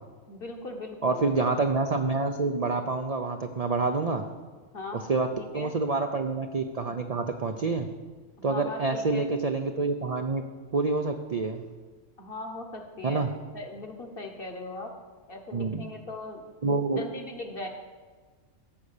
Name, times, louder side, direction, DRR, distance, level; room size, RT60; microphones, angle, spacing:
voice 1, 0.3-1.2 4.7-5.0 5.4-5.7 8.4-9.3 12.2-13.3 13.5-14.9 15.3-16.4 16.9-17.7, left 2 dB, 45° left, 3 dB, 1.4 m, -39 dB
voice 2, 1.0-4.3 4.9-5.3 5.5-7.9 8.4-10.4 10.7-11.6 13.0-13.3 15.5-15.8 16.6-17.0, right 3 dB, 45° right, 5 dB, 0.5 m, -27 dB
14.5 x 5.4 x 6.6 m, 1.4 s
omnidirectional pair, 1.3 m